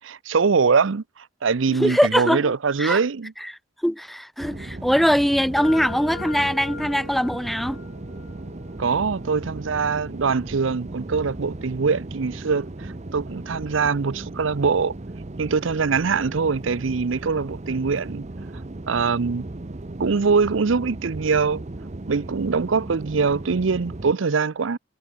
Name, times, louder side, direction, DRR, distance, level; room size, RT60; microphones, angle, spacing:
voice 1, 0.0-3.3 8.8-15.0 15.4-18.3 18.9-19.4 20.0-21.6 22.1-24.8, right 5 dB, 70° right, 0.6 m, -23 dB
voice 2, 1.8-2.5 2.8-3.0 3.8-7.8, equal, ahead, 0.4 m, -21 dB
sound 1, 4.4-24.1, right 2 dB, 35° right, 0.8 m, -36 dB
sound 2, 5.6-13.4, left 4 dB, 60° left, 4.9 m, -43 dB
head